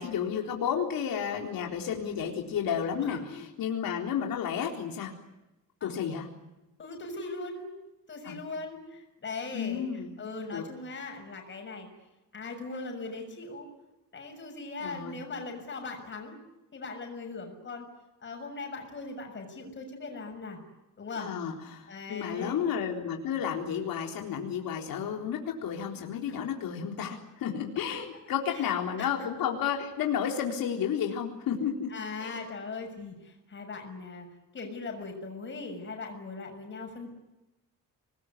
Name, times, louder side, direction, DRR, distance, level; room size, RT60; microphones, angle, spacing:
voice 1, 0.0-5.1 5.8-6.3 8.3-8.4 9.5-10.1 10.5-10.6 14.8-15.2 21.2-31.9 32.2-32.3, left 8 dB, 90° left, 2 dB, 3.9 m, -32 dB
voice 2, 6.8-7.7 8.1-9.8 10.2-11.9 12.3-13.7 14.1-16.4 16.7-17.9 18.2-20.6 21.0-21.3 21.9-22.6 28.5-28.7 29.0-29.1 31.9-34.3 34.5-37.1, left 3 dB, 35° left, 3 dB, 6.8 m, -39 dB
27.0 x 20.5 x 9.8 m, 0.98 s
cardioid pair, 170°, 34 cm